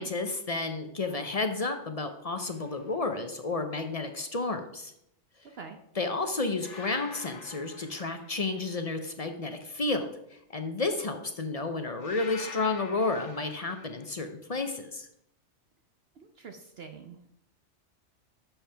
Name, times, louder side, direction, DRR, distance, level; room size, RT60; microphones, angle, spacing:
voice 1, 0.0-4.9 6.0-15.1, left 3 dB, 40° left, 7 dB, 0.6 m, -31 dB
sound 1, 2.4-2.8 6.6-8.8 12.0-14.1, left 4 dB, 70° left, 1.5 m, -46 dB
voice 2, 16.2-17.3, right 5 dB, 60° right, 4 dB, 0.9 m, -45 dB
10.0 x 7.2 x 3.4 m, 0.77 s
omnidirectional pair, 1.3 m